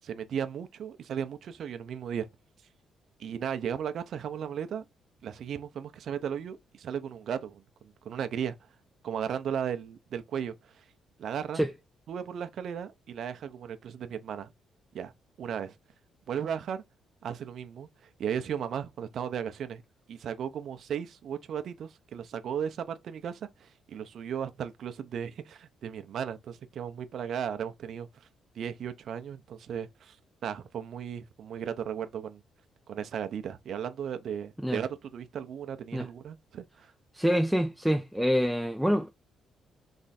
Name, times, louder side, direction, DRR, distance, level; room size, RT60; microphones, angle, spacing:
voice 1, 0.0-2.3 3.2-4.8 5.2-8.5 9.0-10.8 11.2-11.6 12.1-14.5 14.9-15.1 15.4-15.7 16.3-16.8 17.2-19.8 20.1-28.3 28.5-30.2 30.4-32.4 32.9-36.9, right 8 dB, 65° right, 0.7 m, -36 dB
voice 2, 37.1-39.1, equal, 5° right, 0.5 m, -26 dB
3.6 x 3.3 x 4.1 m
cardioid pair, 90°, 0 cm